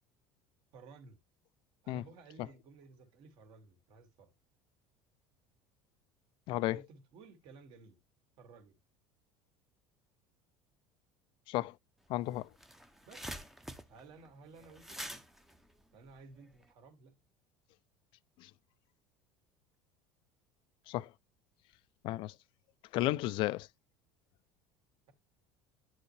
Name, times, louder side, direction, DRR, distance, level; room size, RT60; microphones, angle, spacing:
voice 1, 0.7-1.2 1.8-4.3 6.7-8.0 8.4-8.8 13.1-13.3 13.9-15.2 15.9-17.2, right 4 dB, 60° right, 2.3 m, -56 dB
voice 2, 6.5-6.8 11.5-11.7 12.1-12.5 18.4-18.5 20.9-21.1 22.0-22.3 22.9-23.7, left 16 dB, 55° left, 0.4 m, -33 dB
sound 1, 12.1-12.2 12.4-16.7, equal, 5° right, 0.7 m, -47 dB
9.6 x 4.4 x 3.2 m
supercardioid pair, 120°, 10 cm